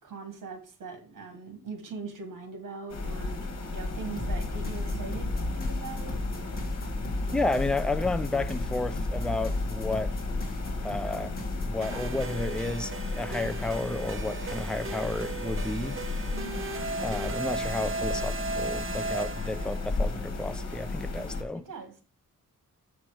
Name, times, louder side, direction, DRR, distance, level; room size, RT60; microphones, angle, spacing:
voice 1, 0.0-6.2 16.3-16.8 21.5-21.9, right 4 dB, 80° right, 2.0 m, -41 dB
sound 1, 2.9-21.4, left 3 dB, 55° left, 2.0 m, -34 dB
sound 2, 4.2-11.8, left 2 dB, 30° left, 1.9 m, -35 dB
voice 2, 7.3-10.2 10.8-11.4 11.6-16.0 17.0-21.7, left 2 dB, 5° left, 0.3 m, -32 dB
sound 3, 11.8-19.9, right 3 dB, 40° right, 0.8 m, -36 dB
7.2 x 6.0 x 4.8 m
wide cardioid pair, 170°, 32 cm